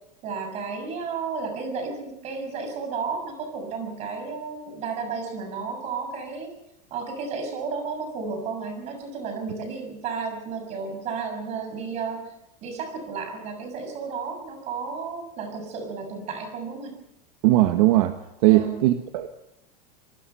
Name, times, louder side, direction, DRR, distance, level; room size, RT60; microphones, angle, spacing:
voice 1, 0.2-6.5 6.9-12.3 12.6-17.0 18.4-18.8, right 5 dB, 35° right, 5 dB, 6.7 m, -33 dB
voice 2, 17.4-19.3, right 16 dB, 60° right, 6 dB, 1.5 m, -19 dB
26.5 x 20.0 x 5.7 m, 0.85 s
supercardioid pair, 165°, 20 cm